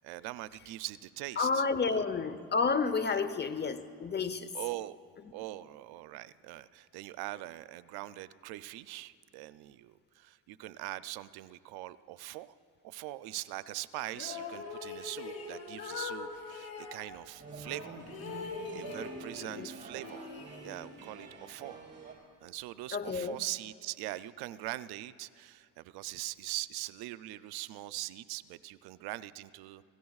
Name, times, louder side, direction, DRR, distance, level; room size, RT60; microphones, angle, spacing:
voice 1, 0.0-2.0 3.1-3.2 4.5-5.0 5.3-12.6 12.8-18.0 18.7-20.3 20.6-21.8 22.4-29.8, right 16 dB, 90° right, 15 dB, 0.5 m, -42 dB
voice 2, 1.4-4.5 19.4-19.7 22.9-23.4, left 4 dB, 30° left, 12 dB, 0.8 m, -30 dB
sound 1, 14.1-17.0 17.6-19.6 19.9-21.0, left 5 dB, 75° left, 3.5 m, -42 dB
sound 2, 17.3-22.1, right 3 dB, 30° right, 4.5 m, -47 dB
30.0 x 17.0 x 2.4 m, 2.3 s
cardioid pair, 80°, 37 cm